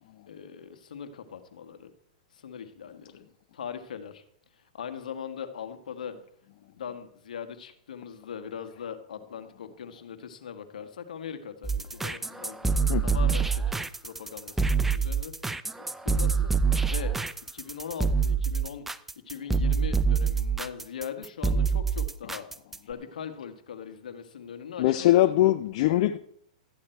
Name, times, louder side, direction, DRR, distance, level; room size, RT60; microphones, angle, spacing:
voice 1, 0.3-1.9 2.3-3.2 3.5-4.2 4.5-6.1 6.7-12.8 13.0-15.3 15.8-16.5 16.8-17.1 17.5-18.9 19.2-22.4 22.8-25.5, left 7 dB, 75° left, 9 dB, 1.6 m, -40 dB
sound 1, 11.6-22.9, right 5 dB, 5° right, 0.5 m, -26 dB
voice 2, 24.8-26.2, left 14 dB, 50° left, 10 dB, 0.6 m, -22 dB
13.5 x 9.7 x 4.5 m, 0.66 s
hypercardioid pair, 130°, 4 cm